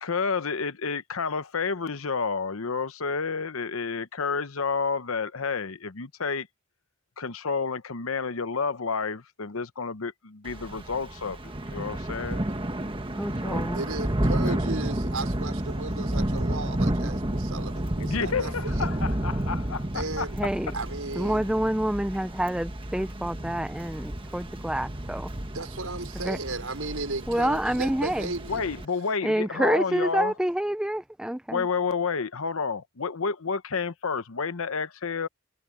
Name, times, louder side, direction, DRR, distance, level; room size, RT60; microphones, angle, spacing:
voice 1, 0.0-6.5 7.2-12.5 13.4-13.7 14.4-14.6 18.0-20.5 28.5-30.3 31.5-35.3, left 5 dB, 75° left, 0.9 m, -30 dB
Thunder / Rain, 10.5-28.9, right 1 dB, 25° right, 1.5 m, -31 dB
voice 2, 13.2-13.8 20.4-20.7 21.2-25.3 26.2-26.4 27.3-28.3 29.2-31.6, right 1 dB, 5° right, 0.4 m, -27 dB
voice 3, 13.7-18.9 19.9-20.4 20.7-21.5 25.5-28.7, right 3 dB, 75° right, 4.9 m, -35 dB
head